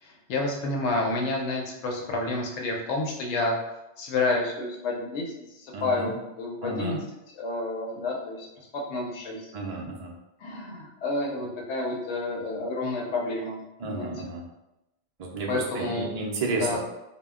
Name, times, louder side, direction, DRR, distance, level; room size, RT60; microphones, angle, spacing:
voice 1, 0.0-3.6 4.0-7.0 7.4-9.5 10.4-14.1 15.5-16.1 16.5-16.8, left 2 dB, 85° left, 0 dB, 0.9 m, -30 dB
voice 2, 5.7-6.1 6.6-7.0 9.5-10.1 13.8-14.5 15.2-16.8, right 3 dB, 50° right, -1 dB, 0.5 m, -32 dB
2.2 x 2.1 x 3.5 m, 0.93 s
omnidirectional pair, 1.1 m